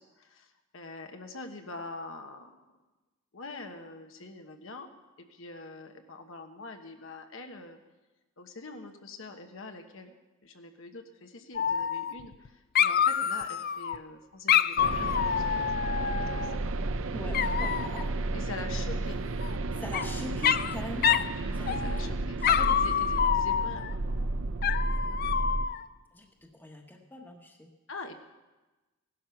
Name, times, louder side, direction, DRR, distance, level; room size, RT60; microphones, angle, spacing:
voice 1, 0.0-2.6 3.3-4.9 5.2-7.8 8.4-10.1 10.4-15.6 16.0-16.5 18.3-19.2 21.0-21.2 21.5-24.3 27.9-28.1, left 2 dB, 65° left, 5 dB, 1.3 m, -44 dB
Dog, 11.5-12.5 12.7-14.0 14.5-16.6 17.3-18.0 19.4-20.1 20.4-20.7 21.0-21.3 21.7-22.1 22.4-23.9 24.6-25.8, left 8 dB, 45° left, 0.4 m, -27 dB
sound 1, 14.8-25.7, right 2 dB, 65° right, 0.7 m, -32 dB
voice 2, 17.1-18.2 19.7-21.1 21.6-22.1 22.4-22.5 26.1-27.7, left 1 dB, 10° left, 3 dB, 1.3 m, -42 dB
17.5 x 12.0 x 5.9 m, 1.1 s
head